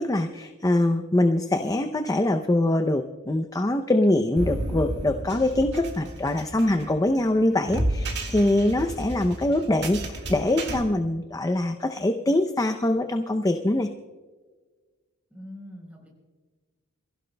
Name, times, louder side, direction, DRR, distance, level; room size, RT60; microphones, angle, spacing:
voice 1, 0.0-13.9, left 1 dB, 15° left, 7 dB, 0.5 m, -23 dB
sound 1, 4.4-10.8, right 1 dB, 55° right, 1.9 m, -32 dB
voice 2, 15.3-16.1, left 1 dB, 5° right, -1 dB, 3.8 m, -43 dB
28.0 x 15.5 x 2.2 m, 1.4 s
head